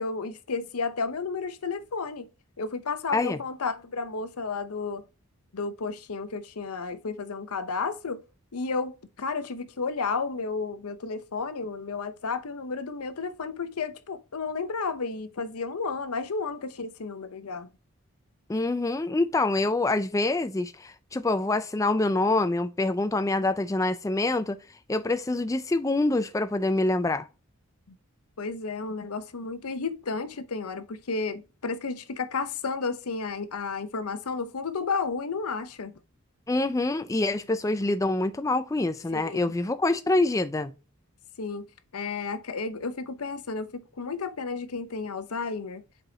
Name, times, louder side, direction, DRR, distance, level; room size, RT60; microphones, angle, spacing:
voice 1, 0.0-2.3 2.6-5.0 5.5-8.2 8.5-17.7 28.4-35.9 39.1-39.5 41.4-41.7 41.9-45.8, left 4 dB, 85° left, 0.7 m, -32 dB
voice 2, 18.5-24.6 24.9-27.3 36.5-40.7, left 2 dB, 15° left, 0.3 m, -26 dB
7.8 x 4.7 x 2.8 m
head